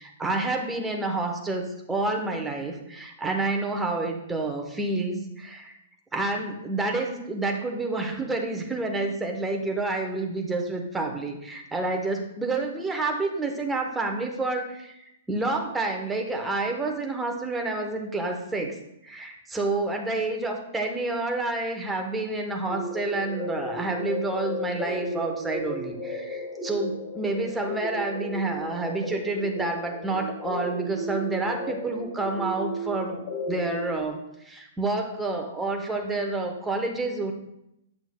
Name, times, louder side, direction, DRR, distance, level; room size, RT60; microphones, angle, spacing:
voice 1, 0.0-5.8 6.1-18.8 19.0-33.2 33.5-34.2 34.4-37.3, right 2 dB, 10° right, 2 dB, 1.0 m, -29 dB
sound 1, 22.7-33.9, left 1 dB, 30° left, 2.2 m, -34 dB
8.5 x 6.0 x 2.2 m, 0.84 s
figure-of-eight pair, 110°, 0 cm